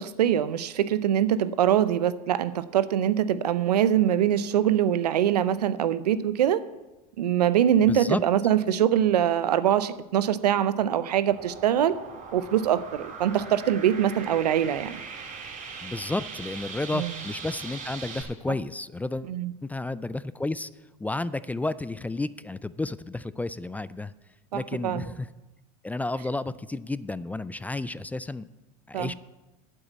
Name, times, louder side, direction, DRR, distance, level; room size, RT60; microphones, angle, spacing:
voice 1, 0.0-6.6 7.2-11.9 12.3-15.0 16.9-17.1 19.3-19.5 24.5-25.1 28.9-29.1, right 10 dB, 90° right, 15 dB, 0.7 m, -23 dB
voice 2, 7.9-8.2 15.8-19.3 19.7-20.7 21.0-24.1 24.5-25.3 25.8-28.5 28.9-29.1, left 2 dB, 10° left, 17 dB, 0.3 m, -31 dB
sound 1, 11.3-18.2, right 5 dB, 40° right, 3.8 m, -40 dB
9.1 x 8.0 x 8.4 m, 1.1 s
hypercardioid pair, 95°, 20 cm